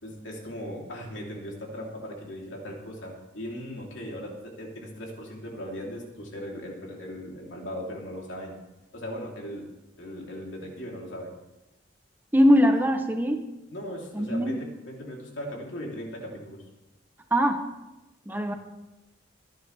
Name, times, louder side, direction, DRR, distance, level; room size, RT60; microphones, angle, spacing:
voice 1, 0.0-8.6 8.9-9.7 10.0-11.3 13.7-16.6 18.5-18.6, equal, 80° left, -1 dB, 3.3 m, -38 dB
voice 2, 12.3-13.4 14.1-14.6 17.3-17.6 18.3-18.5, equal, 10° right, 5 dB, 0.9 m, -21 dB
24.5 x 10.5 x 3.4 m, 1.0 s
head